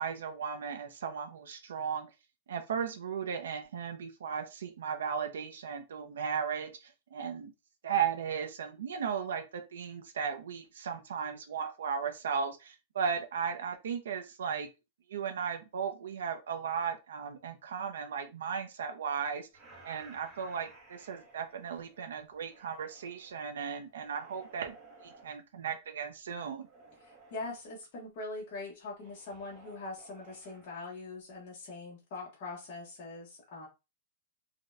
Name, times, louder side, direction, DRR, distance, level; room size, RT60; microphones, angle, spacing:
voice 1, 0.0-2.1 2.5-7.5 7.8-14.7 15.1-19.5 19.8-24.7 25.0-26.7, right 7 dB, 85° right, 6 dB, 0.5 m, -36 dB
sound 1, 19.5-23.3 23.9-25.3 26.6-27.6 29.0-30.7, right 3 dB, 15° right, 0.7 m, -56 dB
voice 2, 27.0-33.7, left 3 dB, 30° left, -5 dB, 0.8 m, -42 dB
4.1 x 2.1 x 2.4 m, 0.26 s
supercardioid pair, 180°, 0 cm